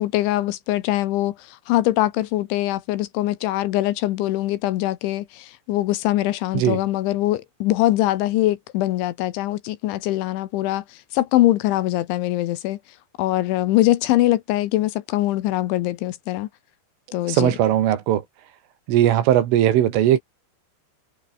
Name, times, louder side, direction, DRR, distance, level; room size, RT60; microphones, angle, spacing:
voice 1, 0.0-10.8 11.1-12.8 13.2-16.5 17.1-17.5, left 15 dB, 75° left, 3.3 m, -22 dB
voice 2, 17.3-18.2 18.9-20.2, right 12 dB, 75° right, 4.6 m, -18 dB
omnidirectional pair, 5.9 m